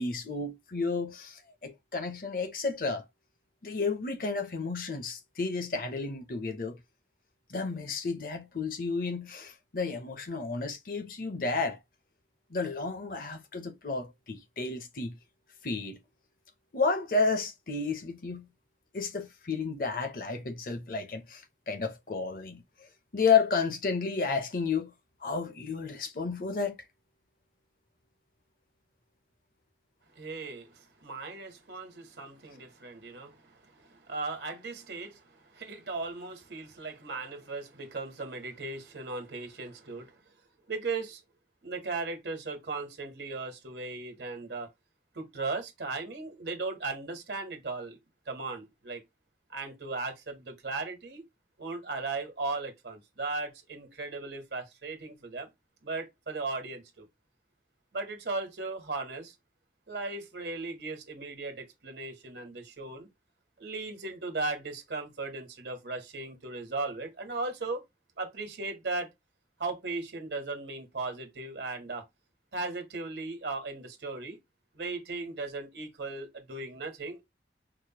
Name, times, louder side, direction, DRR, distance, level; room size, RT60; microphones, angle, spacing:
voice 1, 0.0-3.0 3.6-6.8 7.5-11.8 12.5-15.2 15.6-16.0 16.7-18.5 18.9-22.6 23.1-24.9 25.2-26.8, left 4 dB, 50° left, 0.7 m, -31 dB
voice 2, 30.1-40.2 40.7-41.2 41.6-44.7 45.1-48.0 48.3-49.0 49.5-51.2 51.6-55.5 55.8-57.1 57.9-59.3 59.9-63.1 63.6-67.8 68.2-69.1 69.6-72.0 72.5-74.4 74.7-77.2, right 3 dB, 75° right, 1.2 m, -37 dB
4.8 x 2.1 x 2.8 m
head